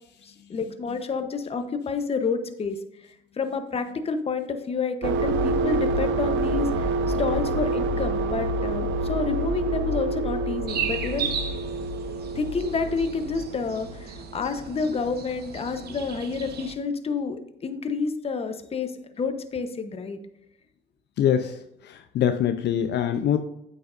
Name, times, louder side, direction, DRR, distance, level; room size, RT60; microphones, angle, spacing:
voice 1, 0.2-2.8 3.4-11.4 12.3-20.2, left 4 dB, 30° left, 7 dB, 1.0 m, -29 dB
sound 1, 5.0-14.5, right 2 dB, 70° right, 0.8 m, -27 dB
sound 2, 10.7-16.7, right 7 dB, 50° right, 1.2 m, -35 dB
voice 2, 21.2-23.4, left 9 dB, 55° left, 7 dB, 0.7 m, -24 dB
8.7 x 8.6 x 2.6 m, 0.80 s
cardioid pair, 115°, 21 cm